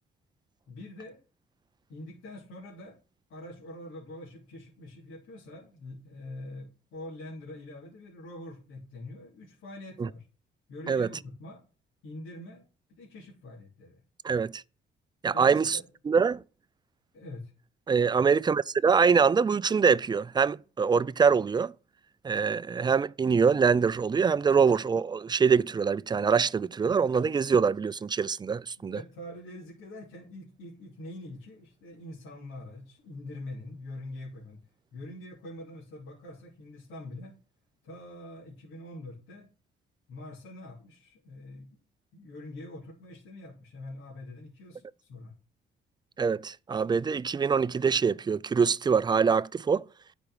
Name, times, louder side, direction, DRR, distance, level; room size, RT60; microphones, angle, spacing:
voice 1, 0.7-1.2 1.9-3.0 3.3-10.2 10.7-11.6 12.0-14.0 15.3-15.9 17.1-17.5 28.8-34.6 34.9-37.3 37.8-39.5 40.1-41.7 42.1-45.3, left 1 dB, 80° left, 3.0 m, -44 dB
voice 2, 14.2-14.6 15.2-15.8 16.1-16.4 17.9-21.7 22.2-29.0 46.2-49.8, right 6 dB, 20° right, 0.4 m, -24 dB
10.5 x 5.1 x 6.3 m
cardioid pair, 90°, 20 cm